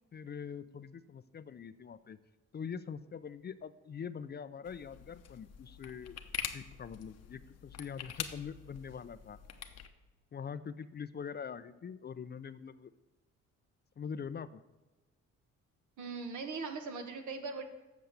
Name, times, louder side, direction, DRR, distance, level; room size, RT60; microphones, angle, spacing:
voice 1, 0.1-2.2 2.5-6.2 6.5-9.4 10.3-12.9 14.0-14.6, left 7 dB, 35° left, 14 dB, 0.5 m, -43 dB
sound 1, 4.7-9.9, left 8 dB, 55° left, 0.9 m, -44 dB
voice 2, 16.0-17.6, right 4 dB, 75° right, 6 dB, 1.5 m, -40 dB
8.1 x 6.4 x 6.9 m, 1.1 s
cardioid pair, 90°, 30 cm